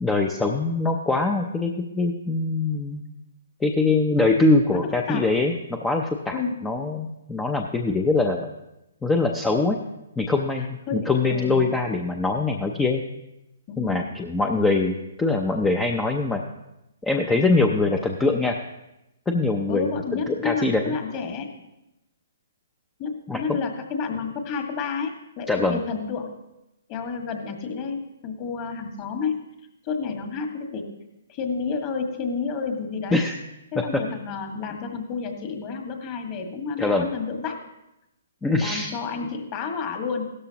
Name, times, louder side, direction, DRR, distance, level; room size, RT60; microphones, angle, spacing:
voice 1, 0.0-3.0 3.6-5.5 5.8-8.5 9.0-9.8 10.2-13.0 13.8-16.4 17.0-18.6 19.3-19.9 20.3-21.0 23.3-23.4 25.5-25.8 33.1-33.4 36.8-37.1 38.4-38.9, left 3 dB, 5° left, 3 dB, 0.6 m, -23 dB
voice 2, 4.7-5.3 6.3-6.6 10.9-11.8 13.7-14.1 19.7-21.5 23.0-26.3 26.9-29.4 29.8-30.8 31.3-33.2 33.7-37.6 38.6-40.3, left 5 dB, 30° left, 4 dB, 1.7 m, -30 dB
16.0 x 13.0 x 2.9 m, 0.90 s
hypercardioid pair, 150°, 0 cm